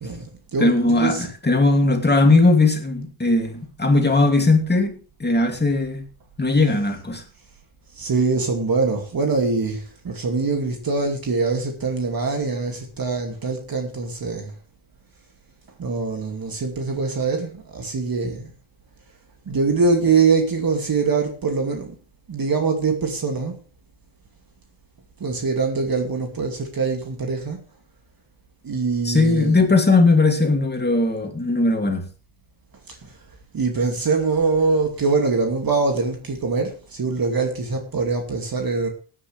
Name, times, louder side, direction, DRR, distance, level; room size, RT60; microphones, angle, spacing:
voice 1, 0.0-1.3 6.6-6.9 7.9-14.5 15.8-18.5 19.5-21.9 22.3-23.5 25.2-27.6 28.6-29.7 32.9-33.2 33.5-38.9, right 4 dB, 45° right, 2.5 m, -23 dB
voice 2, 0.6-6.0 6.4-7.2 29.0-32.0, left 2 dB, 20° left, 2.7 m, -18 dB
17.0 x 9.8 x 3.4 m
cardioid pair, 95°, 48 cm